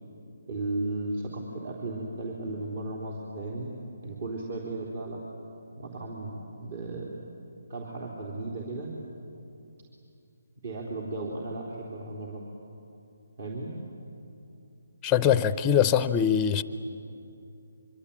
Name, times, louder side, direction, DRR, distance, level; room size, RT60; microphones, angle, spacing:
voice 1, 0.5-3.7 4.0-5.2 5.8-7.1 7.7-8.9 10.6-12.4 13.4-13.7, right 2 dB, 50° right, -2 dB, 3.8 m, -35 dB
voice 2, 15.0-16.6, left 8 dB, 10° left, 13 dB, 0.6 m, -22 dB
25.0 x 25.0 x 8.8 m, 2.7 s
hypercardioid pair, 160°, 0 cm